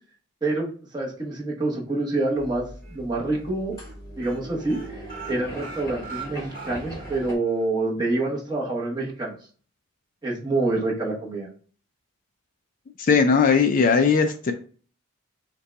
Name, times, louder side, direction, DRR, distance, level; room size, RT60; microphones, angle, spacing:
voice 1, 0.4-3.7 4.2-5.0 5.3-9.4 10.2-11.5, right 2 dB, 20° right, -3 dB, 1.0 m, -27 dB
sound 1, 2.4-7.3, right 1 dB, 15° left, 1.1 m, -40 dB
sound 2, 2.4-3.0 3.3-3.5 3.7-3.9 4.2-7.2 7.6-7.7 8.0-8.1, right 5 dB, 40° right, 2.1 m, -41 dB
voice 2, 13.0-14.5, left 5 dB, 40° left, 6 dB, 0.3 m, -19 dB
5.4 x 2.3 x 3.8 m, 0.42 s
head